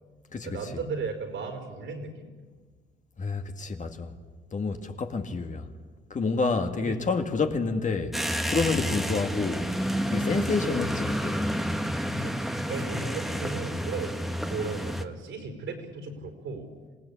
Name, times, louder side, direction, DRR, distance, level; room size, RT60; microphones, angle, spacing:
voice 1, 0.4-2.3 6.8-7.0 8.8-9.0 12.2-16.7, right 4 dB, 75° right, 4.7 m, -36 dB
voice 2, 3.2-4.1 4.5-5.7 6.1-8.1 8.5-9.7 10.1-11.4, left 4 dB, 40° left, 1.9 m, -28 dB
sound 1, 8.1-15.0, equal, ahead, 1.4 m, -30 dB
27.0 x 17.5 x 8.5 m
cardioid pair, 90°, 20 cm